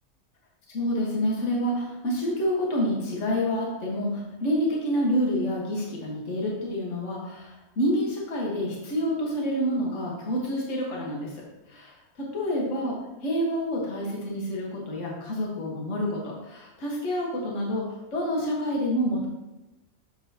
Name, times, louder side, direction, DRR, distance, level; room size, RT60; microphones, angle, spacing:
voice 1, 0.7-7.5 7.8-11.3 11.7-11.9 12.2-13.0 13.2-19.3, equal, 55° left, -3 dB, 1.7 m, -28 dB
7.3 x 6.7 x 2.8 m, 1.0 s
omnidirectional pair, 1.5 m